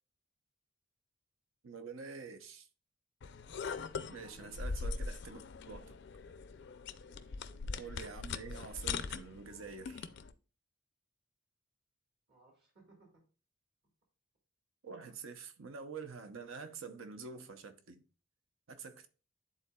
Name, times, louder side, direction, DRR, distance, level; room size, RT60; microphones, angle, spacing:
voice 1, 1.6-2.7 4.1-5.4 5.7-6.0 7.8-10.1 14.8-18.0 18.7-19.1, right 5 dB, 75° right, 0.7 m, -47 dB
sound 1, 3.2-10.3, left 4 dB, 55° left, 0.4 m, -41 dB
voice 2, 4.2-4.7 7.0-7.6 12.3-13.2, right 2 dB, 50° right, 1.8 m, -62 dB
11.0 x 3.8 x 2.2 m
head